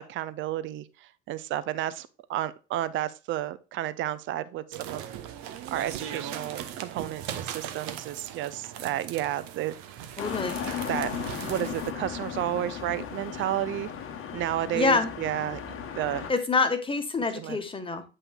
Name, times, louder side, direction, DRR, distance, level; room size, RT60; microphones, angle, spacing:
voice 1, 0.0-5.0 5.7-10.1 10.8-11.1 11.5-13.9 14.3-15.6 15.9-16.3 17.3-17.6, right 13 dB, 35° right, 0.6 m, -32 dB
sound 1, 4.7-11.9, right 10 dB, 55° right, 1.0 m, -39 dB
sound 2, 10.2-16.3, left 8 dB, 40° left, 1.1 m, -36 dB
voice 2, 10.2-10.6 14.7-15.1 16.3-18.0, left 4 dB, 15° left, 1.3 m, -26 dB
8.3 x 5.4 x 2.3 m
figure-of-eight pair, 70°, 33 cm